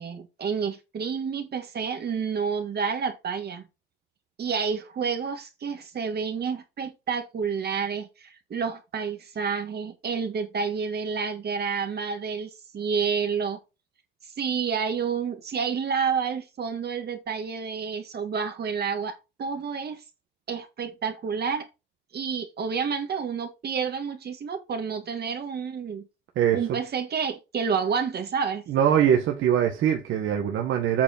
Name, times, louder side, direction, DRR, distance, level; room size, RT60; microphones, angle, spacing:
voice 1, 0.0-3.6 4.4-13.6 14.4-20.0 20.5-21.7 22.1-26.0 26.5-28.6, right 6 dB, 55° right, 1.9 m, -29 dB
voice 2, 28.7-31.0, right 9 dB, 80° right, 1.6 m, -22 dB
8.3 x 4.6 x 6.0 m
cardioid pair, 90°, 20 cm